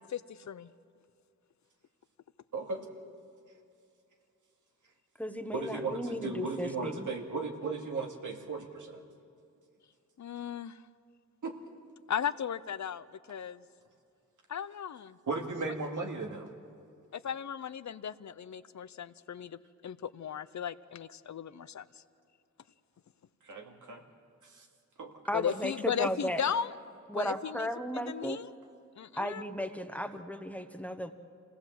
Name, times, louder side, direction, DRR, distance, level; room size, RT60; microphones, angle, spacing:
voice 1, 0.1-0.7 10.2-10.8 12.1-13.6 14.5-15.2 17.1-21.9 25.3-26.7 27.1-27.7 27.9-28.5 29.0-29.4, left 8 dB, 65° left, 15 dB, 0.6 m, -36 dB
voice 2, 2.5-2.9 5.5-9.0 11.4-11.8 15.3-16.5 23.4-24.0 24.4-24.7 25.0-25.2, right 3 dB, 80° right, 2 dB, 2.3 m, -36 dB
voice 3, 5.2-7.1 25.3-26.4 27.1-28.4 29.2-31.1, equal, 5° left, 8 dB, 1.1 m, -35 dB
26.5 x 17.5 x 7.5 m, 2.5 s
wide cardioid pair, 110°, 30 cm